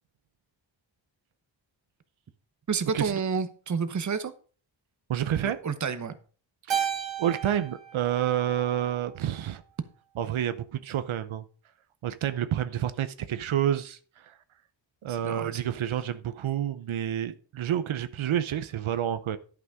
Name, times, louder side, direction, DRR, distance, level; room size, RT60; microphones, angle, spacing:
voice 1, 2.7-4.3 5.4-6.2 15.1-15.6, right 5 dB, 40° right, 12 dB, 0.9 m, -30 dB
voice 2, 5.1-5.6 6.7-6.9 7.2-9.6 10.2-11.4 12.0-14.4 15.0-19.4, right 10 dB, 90° right, 12 dB, 0.8 m, -29 dB
Keyboard (musical), 6.7-9.2, right 8 dB, 70° right, 1.6 m, -34 dB
11.0 x 6.0 x 4.9 m, 0.40 s
wide cardioid pair, 130°, 47 cm